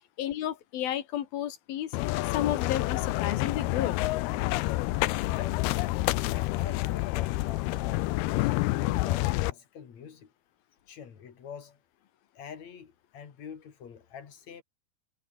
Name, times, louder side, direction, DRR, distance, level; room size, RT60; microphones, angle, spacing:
voice 1, 0.2-4.0, left 11 dB, 70° left, 3.4 m, -32 dB
sound 1, 1.9-9.5, left 19 dB, 90° left, 2.7 m, -28 dB
voice 2, 5.3-5.7 6.3-10.3 10.9-11.8 12.4-14.6, left 7 dB, 45° left, 3.7 m, -45 dB
omnidirectional pair, 4.5 m